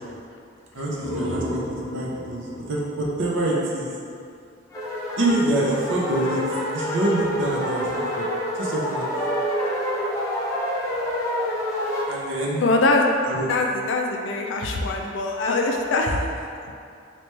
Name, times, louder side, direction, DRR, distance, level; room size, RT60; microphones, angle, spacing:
sound 1, 0.7-4.3, left 1 dB, 30° left, 1.2 m, -34 dB
voice 1, 0.7-1.6 1.9-3.9 5.2-6.4 6.7-8.3 8.5-9.1 12.1-12.6 13.3-13.5, right 2 dB, 70° right, -4 dB, 0.6 m, -26 dB
sound 2, 4.7-12.1, equal, 15° left, 0.5 m, -27 dB
voice 2, 12.6-13.1 13.5-16.2, left 2 dB, 65° left, 2 dB, 0.4 m, -22 dB
3.0 x 2.9 x 3.2 m, 2.5 s
head